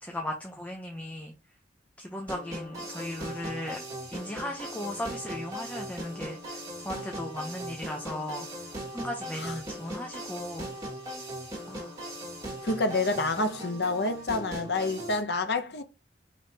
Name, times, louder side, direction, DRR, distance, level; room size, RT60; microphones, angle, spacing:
voice 1, 0.0-1.3 2.0-3.8 4.1-6.4 6.8-8.5 8.9-10.7 11.7-11.9, left 1 dB, 10° left, 0.7 m, -36 dB
sound 1, 2.3-15.2, right 1 dB, 20° right, 2.0 m, -39 dB
voice 2, 12.6-15.8, left 2 dB, 65° left, 0.7 m, -28 dB
5.2 x 3.2 x 2.7 m
head